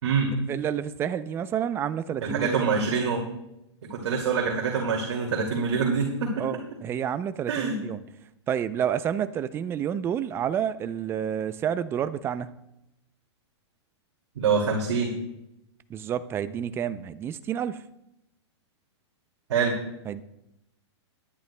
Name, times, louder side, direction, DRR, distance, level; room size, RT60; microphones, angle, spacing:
voice 1, 0.5-2.6 6.4-8.0 8.5-12.5 15.9-17.8 20.1-20.2, right 9 dB, 15° right, 13 dB, 0.4 m, -29 dB
voice 2, 2.2-3.2 3.9-6.3 7.5-7.8 14.4-15.1 19.5-19.8, right 5 dB, 70° right, 0 dB, 2.3 m, -25 dB
18.5 x 10.5 x 2.2 m, 0.87 s
hypercardioid pair, 145°, 15 cm